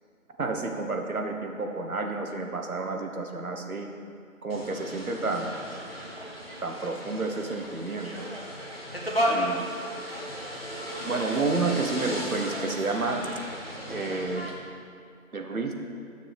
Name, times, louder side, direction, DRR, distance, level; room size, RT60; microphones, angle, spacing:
voice 1, 0.4-3.9 4.4-5.5 6.6-8.3 9.3-9.7 11.0-13.3 13.9-14.5 15.3-15.7, right 3 dB, 75° right, 3 dB, 0.8 m, -30 dB
sound 1, 4.5-14.5, equal, 45° left, 0.8 m, -34 dB
6.8 x 6.8 x 3.1 m, 2.3 s
figure-of-eight pair, 175°, 43 cm